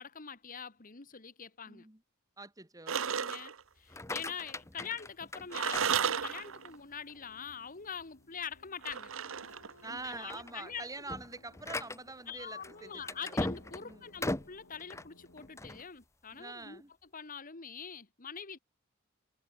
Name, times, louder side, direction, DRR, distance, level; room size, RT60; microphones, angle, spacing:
voice 1, 0.0-1.9 3.2-9.1 9.8-10.9 12.3-16.8 17.1-18.6, left 7 dB, 40° left, 1.6 m, -44 dB
voice 2, 1.7-2.0 2.4-3.1 9.8-13.4 13.8-14.1 16.3-16.9, right 3 dB, 15° right, 3.3 m, -45 dB
sound 1, 2.9-3.6 5.5-6.8 8.8-9.9, right 7 dB, 65° right, 1.0 m, -33 dB
sound 2, 3.8-6.6 7.1-7.5 8.0-8.1 8.5-8.7 9.4-9.6 10.0-15.8, left 2 dB, 15° left, 0.9 m, -40 dB
sound 3, 5.5-15.7, left 2 dB, 85° left, 4.2 m, -61 dB
head